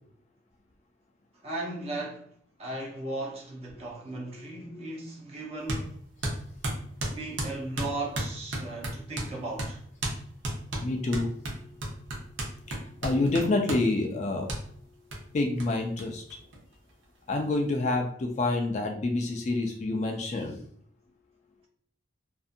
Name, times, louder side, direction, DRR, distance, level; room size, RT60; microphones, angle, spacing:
voice 1, 1.4-2.3 2.6-6.0 7.1-9.8, right 2 dB, 30° right, 0.7 m, -36 dB
sound 1, 5.7-5.8 6.2-9.3 9.6-9.7 10.0-10.2 10.4-13.9 14.5-14.6 15.1-15.2 15.6-15.7 16.0-16.1 16.3-17.0, right 1 dB, 75° right, 0.7 m, -33 dB
voice 2, 10.8-11.7 12.7-12.8 13.0-14.5 15.3-16.2 17.3-20.6, left 2 dB, 35° left, 0.3 m, -28 dB
2.6 x 2.4 x 2.5 m
head